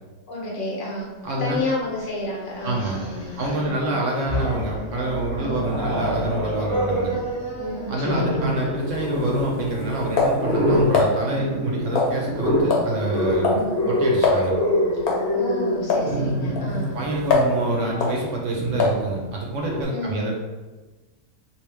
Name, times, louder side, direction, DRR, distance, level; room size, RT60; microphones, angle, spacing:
voice 1, 0.3-1.1 1.4-3.8 5.4-5.7 7.6-8.4 11.3-11.6 13.5-13.8 15.3-17.0 19.9-20.3, left 2 dB, 60° left, -5 dB, 1.2 m, -31 dB
voice 2, 1.2-1.6 2.6-3.0 3.4-7.1 7.9-13.6 13.9-14.5 16.9-20.4, right 1 dB, 65° right, -1 dB, 0.9 m, -27 dB
Growling, 2.6-3.7 4.1-4.8 5.3-19.8, equal, 5° left, 0.9 m, -26 dB
sound 1, 4.5-13.4 13.7-13.9 16.0-16.1, right 1 dB, 30° right, 0.6 m, -39 dB
sound 2, 8.9-11.1 12.0-12.4 12.7-12.9 13.2-13.7 13.9-14.0 14.2-14.5 15.1-15.3 15.9-16.1 16.6-17.6 18.0-18.2 18.8-19.1, left 3 dB, 85° left, 1.1 m, -23 dB
3.0 x 2.6 x 3.3 m, 1.2 s
omnidirectional pair, 1.5 m